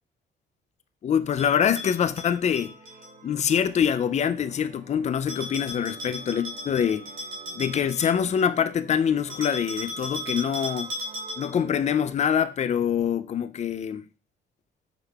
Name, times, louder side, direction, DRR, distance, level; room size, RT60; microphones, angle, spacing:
voice 1, 1.0-2.7 3.2-7.1 7.5-10.9 11.4-14.1, left 8 dB, 35° left, 0.4 m, -25 dB
Bell, 1.4-3.1 5.3-8.5 9.3-11.7, equal, 75° right, 1.8 m, -37 dB
sound 1, 2.5-12.2, right 3 dB, 40° right, 0.9 m, -50 dB
5.4 x 3.7 x 2.3 m
cardioid pair, 90°, 20 cm